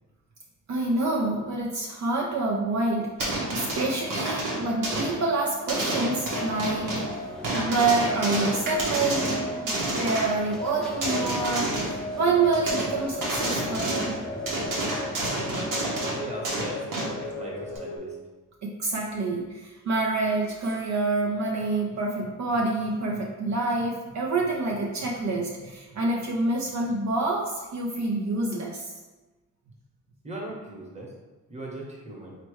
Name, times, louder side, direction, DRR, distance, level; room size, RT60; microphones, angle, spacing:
voice 1, 0.7-3.1 3.5-6.9 7.5-14.1 18.6-28.9, right 3 dB, 60° right, -2 dB, 0.6 m, -27 dB
sound 1, 3.2-5.2 5.7-7.2 7.4-10.4 11.0-12.0 12.5-12.9 13.2-14.2 14.5-17.2 17.8-17.9, right 2 dB, 85° right, 1.2 m, -29 dB
sound 2, 3.6-18.0, left 2 dB, 80° left, 1.0 m, -37 dB
sound 3, 6.5-15.4, left 1 dB, ahead, 0.4 m, -43 dB
voice 2, 16.0-16.9 17.2-18.2 30.2-31.1 31.5-32.4, right 1 dB, 20° right, -2 dB, 1.1 m, -39 dB
4.4 x 2.9 x 3.1 m, 1.2 s
cardioid pair, 90°, 31 cm